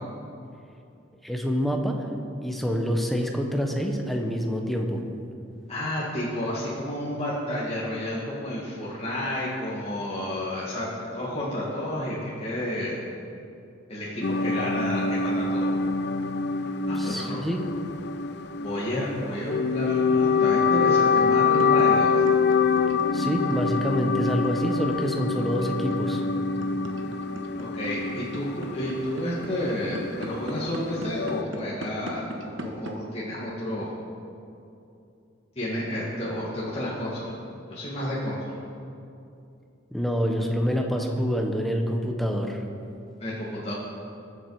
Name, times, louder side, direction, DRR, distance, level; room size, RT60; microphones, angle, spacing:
voice 1, 1.2-2.0 2.4-5.0 16.9-17.6 23.1-26.3 39.9-42.6, equal, ahead, 2 dB, 1.2 m, -27 dB
voice 2, 5.7-13.0 13.9-15.7 16.9-17.4 18.6-22.2 27.6-33.9 35.6-37.3 37.7-38.6 43.2-43.7, left 1 dB, 30° left, -7 dB, 2.0 m, -31 dB
sound 1, 14.2-31.4, left 5 dB, 60° left, 0.5 m, -25 dB
sound 2, 20.3-32.9, right 1 dB, 85° right, 1.4 m, -38 dB
21.5 x 7.8 x 4.9 m, 2.6 s
head